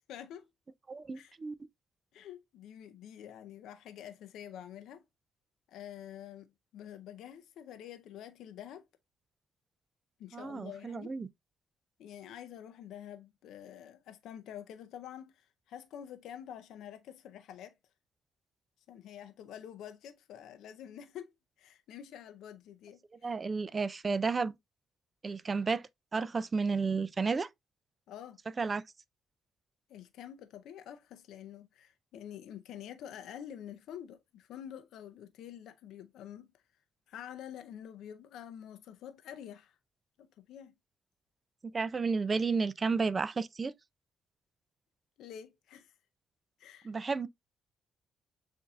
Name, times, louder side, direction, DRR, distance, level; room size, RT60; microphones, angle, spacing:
voice 1, 0.1-0.5 1.1-1.4 2.1-5.0 5.7-8.8 10.2-11.2 12.0-17.8 18.9-21.3 21.6-23.4 28.1-28.4 29.9-36.5 37.1-39.8 40.2-40.7 45.2-45.9 46.6-46.9, left 10 dB, 80° left, 0.5 m, -47 dB
voice 2, 0.9-1.6 10.3-11.3 23.2-24.5 25.2-25.8 26.1-27.5 28.6-28.8 41.7-43.7 46.8-47.3, right 4 dB, 35° right, 0.4 m, -32 dB
6.9 x 2.6 x 2.3 m
cardioid pair, 90°, 0 cm